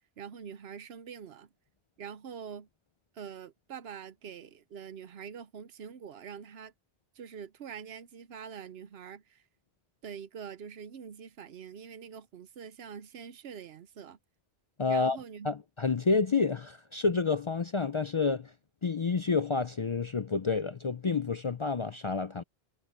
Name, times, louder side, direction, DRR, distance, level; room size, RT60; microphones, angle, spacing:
voice 1, 0.2-1.5 2.0-2.7 3.1-6.7 7.1-9.4 10.0-14.2 14.9-15.5, right 7 dB, 75° right, 1.0 m, -44 dB
voice 2, 14.8-15.2 15.4-18.5 18.8-22.4, left 4 dB, 40° left, 0.4 m, -29 dB
omnidirectional pair, 1.1 m